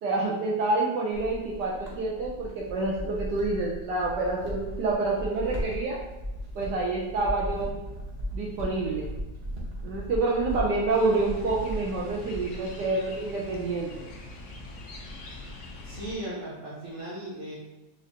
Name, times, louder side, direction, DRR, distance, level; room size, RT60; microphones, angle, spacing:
voice 1, 0.0-6.0 6.5-7.8 8.3-9.1 9.8-14.1, right 3 dB, 70° right, -3 dB, 1.2 m, -28 dB
sound 1, 1.1-12.7, equal, 50° right, 0.7 m, -37 dB
sound 2, 10.9-16.2, left 2 dB, 80° left, 0.6 m, -43 dB
voice 2, 15.8-17.5, right 1 dB, 35° right, -8 dB, 1.3 m, -37 dB
5.1 x 2.5 x 2.7 m, 1.0 s
omnidirectional pair, 2.0 m